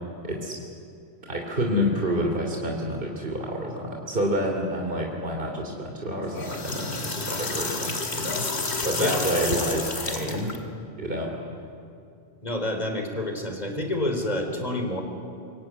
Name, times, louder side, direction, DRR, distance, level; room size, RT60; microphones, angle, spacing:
voice 1, 0.2-0.6 1.3-8.5 8.8-10.6 11.0-11.4, equal, 50° right, 1 dB, 3.2 m, -28 dB
sound 1, 6.2-10.6, left 3 dB, 70° left, 2.6 m, -30 dB
voice 2, 12.4-15.0, left 1 dB, 40° left, 4 dB, 4.0 m, -28 dB
26.5 x 22.5 x 9.5 m, 2.6 s
omnidirectional pair, 1.1 m